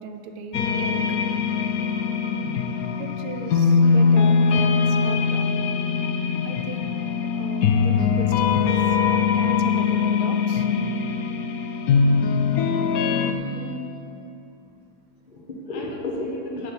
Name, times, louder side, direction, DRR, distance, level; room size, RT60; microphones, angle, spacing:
voice 1, 0.0-1.0 3.0-5.5 6.4-6.9 7.2-8.7 9.1-10.7, right 5 dB, 80° right, 6 dB, 1.6 m, -37 dB
sound 1, 0.5-13.3, left 5 dB, 70° left, 0.8 m, -21 dB
voice 2, 13.0-14.0 15.3-16.7, left 2 dB, 30° left, 0 dB, 1.0 m, -34 dB
11.0 x 5.2 x 7.9 m, 2.7 s
omnidirectional pair, 2.3 m